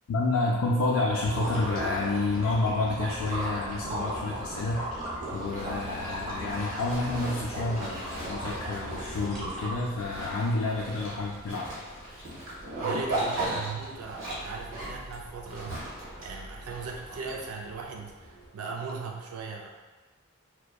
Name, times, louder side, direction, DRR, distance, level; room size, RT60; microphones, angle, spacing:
voice 1, 0.1-4.8 5.3-11.7, left 2 dB, 80° left, -4 dB, 0.3 m, -29 dB
sound 1, 0.9-18.5, equal, 20° left, 0.5 m, -50 dB
sound 2, 1.2-10.1, right 1 dB, 35° right, 0.9 m, -36 dB
Zipper (clothing), 5.2-17.7, right 1 dB, 65° right, 1.0 m, -37 dB
voice 2, 12.8-15.8 16.2-19.7, right 4 dB, 85° right, 0 dB, 0.4 m, -38 dB
2.7 x 2.1 x 2.3 m, 1.4 s
head